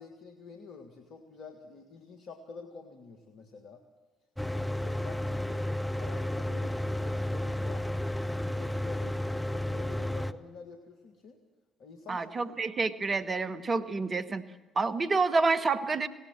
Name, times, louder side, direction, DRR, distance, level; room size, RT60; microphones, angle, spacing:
voice 1, 0.0-3.8 4.5-7.9 8.3-11.4 11.8-12.5, left 4 dB, 65° left, 5 dB, 1.7 m, -48 dB
Mechanical fan, 4.4-10.3, left 1 dB, 5° left, 1.0 m, -32 dB
voice 2, 12.1-14.4 14.8-16.1, right 4 dB, 35° right, 11 dB, 1.3 m, -28 dB
20.0 x 17.5 x 8.8 m, 1.2 s
hypercardioid pair, 50°, 0 cm